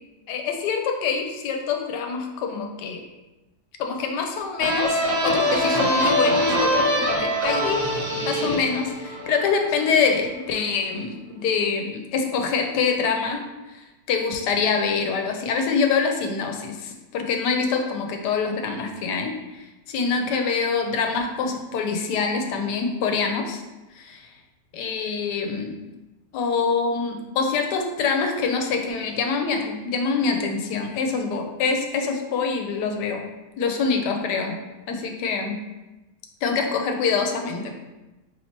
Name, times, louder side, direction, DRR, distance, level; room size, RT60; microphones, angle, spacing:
voice 1, 0.3-3.0 3.8-7.8 8.2-13.4 13.7-23.6 23.9-24.3 24.7-25.8 26.3-33.2 33.6-34.5 34.9-35.6 36.4-37.7, left 5 dB, 85° left, 4 dB, 1.2 m, -25 dB
sound 1, 4.6-10.0, equal, 50° right, 0.6 m, -23 dB
4.3 x 3.0 x 2.8 m, 1.1 s
omnidirectional pair, 1.8 m